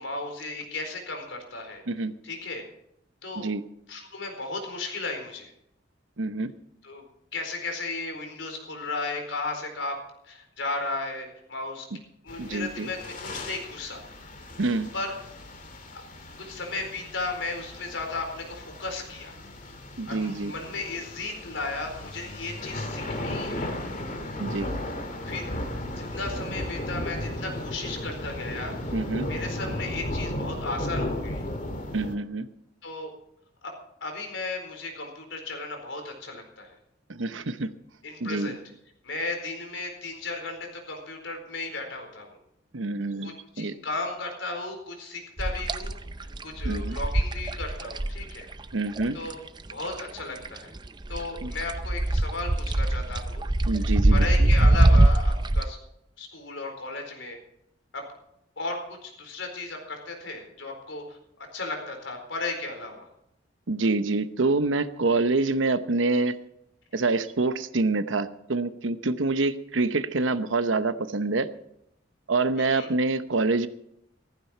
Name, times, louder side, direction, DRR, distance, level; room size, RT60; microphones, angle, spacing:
voice 1, 0.0-1.8 2.2-2.6 3.2-3.5 3.9-5.5 6.8-7.0 7.3-9.9 10.2-11.9 12.2-14.0 14.9-15.1 15.9-16.0 16.4-19.4 20.1-23.8 25.2-25.7 26.0-28.9 29.2-31.4 32.8-33.1 33.6-33.7 34.0-36.7 38.0-38.6 39.0-42.4 43.2-48.5 49.1-49.4 49.7-50.7 51.1-53.5 54.1-55.8 56.2-57.4 57.9-58.0 58.6-63.1 72.6-72.9, left 3 dB, 80° left, 3 dB, 4.4 m, -35 dB
voice 2, 6.2-6.5 12.4-12.9 14.6-14.9 20.0-20.5 24.4-24.7 28.9-29.3 31.9-32.5 37.1-37.7 38.2-38.5 42.7-43.8 46.6-47.0 48.7-49.2 51.4-51.5 53.7-54.5 63.7-66.4 66.9-71.5 72.3-73.7, right 3 dB, 85° right, 12 dB, 0.9 m, -26 dB
sound 1, 12.3-32.2, left 1 dB, 45° left, 2.2 m, -35 dB
sound 2, 45.4-50.2 50.5-55.6, right 1 dB, 25° right, 0.5 m, -22 dB
15.0 x 15.0 x 4.5 m, 0.76 s
head